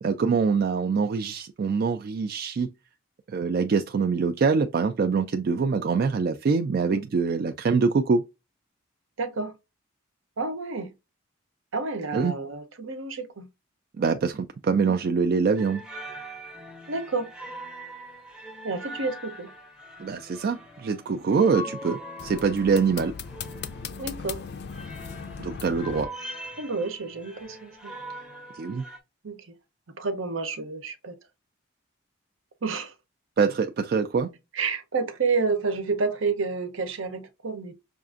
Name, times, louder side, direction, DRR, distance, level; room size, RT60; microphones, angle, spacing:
voice 1, 0.0-2.7 3.3-8.2 12.1-12.3 14.0-15.8 20.0-23.1 25.4-26.1 28.5-28.8 33.4-34.3, right 5 dB, 45° right, 0.3 m, -24 dB
voice 2, 9.2-9.5 10.4-10.9 11.7-13.5 16.9-17.3 18.6-19.5 21.5-21.6 24.0-24.4 26.6-28.0 29.2-29.6 30.0-31.2 32.6-32.9 34.5-37.7, right 4 dB, 65° right, 0.8 m, -30 dB
sound 1, 15.6-29.0, equal, 5° right, 0.6 m, -42 dB
sound 2, 22.2-26.1, left 6 dB, 50° left, 0.4 m, -38 dB
5.8 x 2.5 x 2.4 m
head